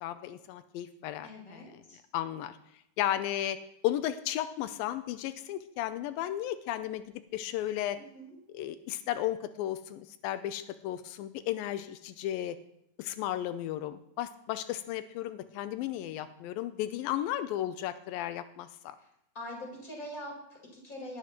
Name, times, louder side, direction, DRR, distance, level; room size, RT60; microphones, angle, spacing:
voice 1, 0.0-1.6 2.1-2.5 3.0-3.6 3.8-7.0 7.3-8.0 8.5-12.6 13.0-19.0, left 12 dB, 90° left, 10 dB, 2.4 m, -34 dB
voice 2, 1.2-2.0 7.9-8.3 19.0-19.1 19.3-21.2, left 1 dB, 25° left, -1 dB, 4.6 m, -43 dB
20.0 x 12.5 x 3.1 m, 0.75 s
omnidirectional pair, 4.1 m